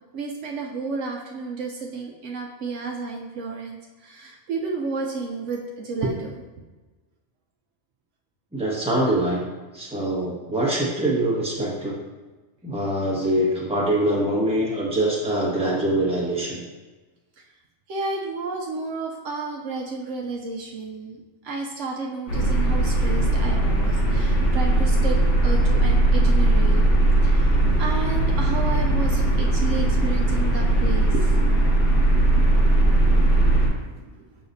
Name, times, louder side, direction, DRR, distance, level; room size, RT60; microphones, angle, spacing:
voice 1, 0.1-6.4 10.0-10.3 17.9-21.2 21.4-26.9 27.2-31.3 33.8-34.1, right 3 dB, 70° right, 0 dB, 1.0 m, -31 dB
voice 2, 8.5-9.4 9.7-12.0 12.6-16.6, right 1 dB, 5° right, -6 dB, 1.4 m, -24 dB
sound 1, 22.3-33.7, right 1 dB, 65° left, 1.5 m, -19 dB
6.7 x 5.7 x 2.7 m, 1.2 s
omnidirectional pair, 1.3 m